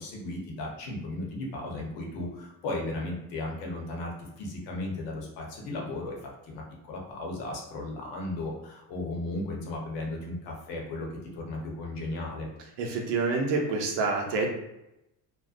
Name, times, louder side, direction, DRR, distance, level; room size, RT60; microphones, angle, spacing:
voice 1, 0.0-11.1 11.3-12.5, left 2 dB, 80° left, -1 dB, 0.9 m, -35 dB
voice 2, 12.8-14.5, right 3 dB, 80° right, 1 dB, 0.7 m, -27 dB
2.5 x 2.2 x 2.4 m, 0.88 s
supercardioid pair, 80°, 41 cm